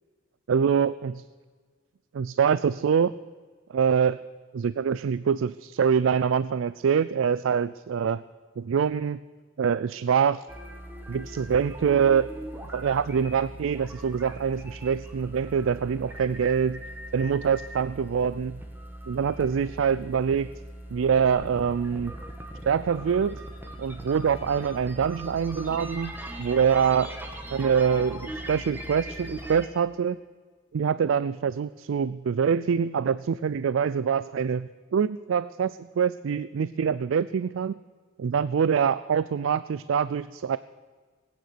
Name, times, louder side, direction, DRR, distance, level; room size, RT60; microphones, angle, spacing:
voice 1, 0.5-1.2 2.1-3.1 3.7-4.2 4.5-8.2 8.6-9.2 9.6-10.4 11.1-12.3 12.7-16.8 17.1-18.5 19.1-20.5 20.9-22.1 22.7-23.4 23.8-26.1 26.4-27.1 27.5-30.2 30.7-37.8 38.2-40.6, right 7 dB, 80° right, 16 dB, 0.4 m, -25 dB
sound 1, 10.5-29.7, right 1 dB, 10° right, 1.5 m, -40 dB
20.0 x 9.4 x 6.8 m, 1.5 s
head